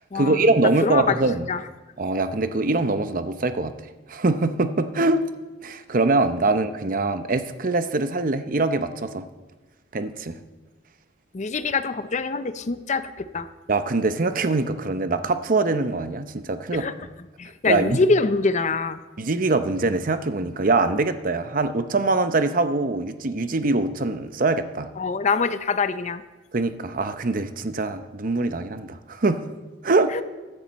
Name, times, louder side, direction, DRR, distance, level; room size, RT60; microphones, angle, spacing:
voice 1, 0.1-1.5 2.0-3.7 4.1-5.2 5.6-9.2 9.9-10.4 13.7-16.9 17.7-18.0 19.2-24.9 26.5-29.5 29.8-30.2, right 3 dB, 50° right, 10 dB, 0.8 m, -23 dB
voice 2, 0.8-1.2 1.5-1.6 11.3-13.5 16.7-16.9 17.4-19.0 25.0-26.2 30.1-30.2, left 4 dB, 40° left, 12 dB, 0.6 m, -24 dB
15.5 x 11.5 x 4.2 m, 1.2 s
head